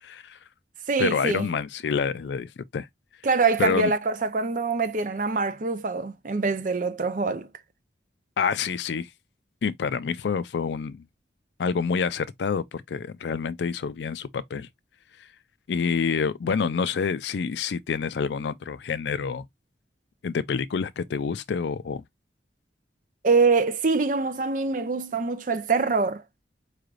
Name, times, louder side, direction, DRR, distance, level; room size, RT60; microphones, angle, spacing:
voice 1, 0.0-0.4 1.0-2.9 3.6-3.9 8.4-9.1 9.6-11.0 11.6-14.7 15.7-19.4 20.2-22.0, left 5 dB, 80° left, 0.4 m, -27 dB
voice 2, 0.9-1.5 3.2-7.5 23.2-26.2, right 4 dB, 45° right, 0.5 m, -24 dB
4.7 x 3.2 x 2.4 m
head